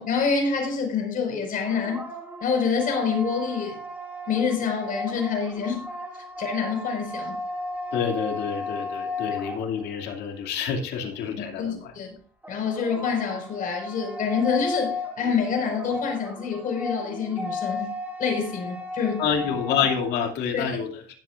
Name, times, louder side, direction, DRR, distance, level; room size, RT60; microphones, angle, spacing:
voice 1, 0.0-2.0 2.4-3.8 4.3-5.9 6.1-7.4 11.4-12.2 12.5-19.3 20.5-20.8, left 6 dB, 55° left, 5.0 m, -27 dB
sound 1, 1.4-10.1 12.4-20.2, left 2 dB, 10° right, 4.7 m, -35 dB
voice 2, 7.9-11.6 19.2-20.9, left 7 dB, 80° left, 2.6 m, -27 dB
19.5 x 8.2 x 2.5 m
cardioid pair, 110°, 17 cm